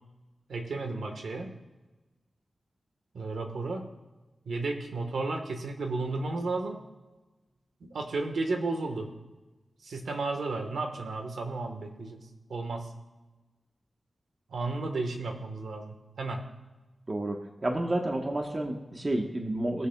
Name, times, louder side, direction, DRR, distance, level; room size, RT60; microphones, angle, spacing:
voice 1, 0.5-1.5 3.1-3.9 4.4-6.8 7.9-9.1 9.8-12.9 14.5-16.5, right 3 dB, 90° right, 4 dB, 1.3 m, -33 dB
voice 2, 17.6-19.9, right 1 dB, 35° right, 2 dB, 1.2 m, -30 dB
20.0 x 6.9 x 2.3 m, 1.1 s
wide cardioid pair, 70°, 0 cm